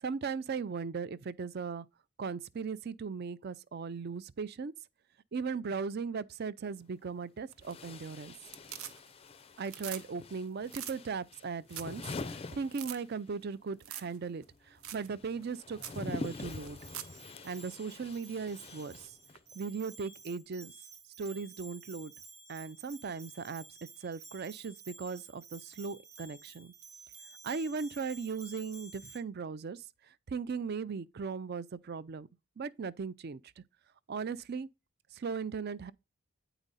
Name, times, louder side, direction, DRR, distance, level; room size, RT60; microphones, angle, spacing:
voice 1, 0.0-1.9 2.2-4.7 5.3-8.3 9.6-16.8 17.4-19.1 19.5-20.7 21.2-22.1 22.5-23.7 24.0-26.7 27.4-32.3 32.6-33.6 34.1-34.7 35.1-35.9, right 5 dB, 45° right, 0.4 m, -38 dB
sound 1, 6.7-6.8 7.6-13.4 13.7-19.5, left 3 dB, 25° left, 0.4 m, -45 dB
sound 2, 7.5-8.1 8.4-9.3 9.6-10.0 10.3-10.4 10.7-11.0 11.4-11.5 11.7-12.0 12.3-12.4 12.7-13.0 13.8-14.2 14.4-14.5 14.8-15.1 15.4-15.5 15.8-16.0 16.7-17.2 19.4-19.5, right 11 dB, 70° right, 0.8 m, -43 dB
Bell, 16.2-29.2, right 4 dB, 85° right, 1.6 m, -53 dB
9.0 x 5.0 x 4.1 m
head